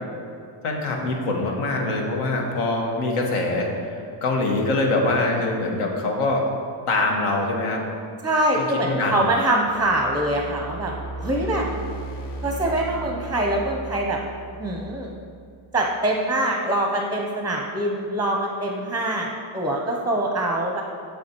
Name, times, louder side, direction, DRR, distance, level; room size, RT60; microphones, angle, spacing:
voice 1, 0.6-6.5 6.9-7.8 8.5-9.3, left 2 dB, 85° left, 1 dB, 1.5 m, -24 dB
voice 2, 8.2-10.9 11.2-11.7 12.4-14.2 14.6-15.1 15.7-19.3 19.5-20.8, right 1 dB, 5° right, 1 dB, 0.6 m, -24 dB
sound 1, 9.7-15.9, right 2 dB, 55° left, 1.2 m, -36 dB
7.2 x 7.0 x 4.5 m, 2.4 s
cardioid pair, 125°, 50 cm